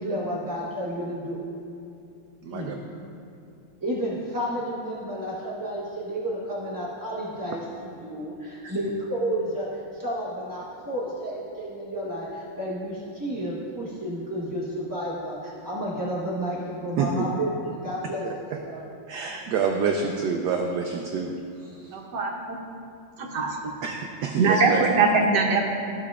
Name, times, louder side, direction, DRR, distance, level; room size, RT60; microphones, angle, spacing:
voice 1, 0.0-1.4 2.5-2.7 3.8-18.2 18.6-18.9, equal, 25° right, -8 dB, 0.4 m, -31 dB
voice 2, 2.4-2.7 8.6-8.8 17.0-17.1 18.2-18.6 19.1-22.0 23.8-24.9, right 6 dB, 80° right, 2 dB, 0.9 m, -28 dB
voice 3, 21.9-22.6 23.2-23.5 24.4-25.7, right 3 dB, 60° right, 0 dB, 1.4 m, -22 dB
14.0 x 5.6 x 2.4 m, 2.5 s
omnidirectional pair, 2.3 m